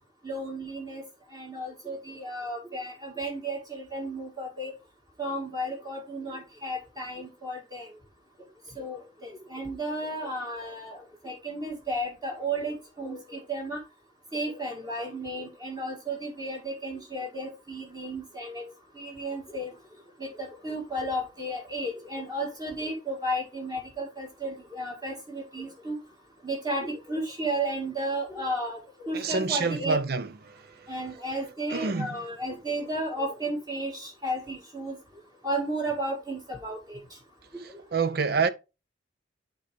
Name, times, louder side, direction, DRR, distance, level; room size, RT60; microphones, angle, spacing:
voice 1, 0.2-1.0 1.3-4.7 5.2-7.9 8.8-13.8 14.3-18.6 19.0-19.7 20.2-26.0 26.4-30.0 30.9-35.0 35.4-37.0, right 1 dB, 20° right, 1.8 m, -33 dB
voice 2, 29.1-30.3 31.7-32.2 37.9-38.5, right 4 dB, 50° right, 0.6 m, -26 dB
9.1 x 3.9 x 3.4 m
head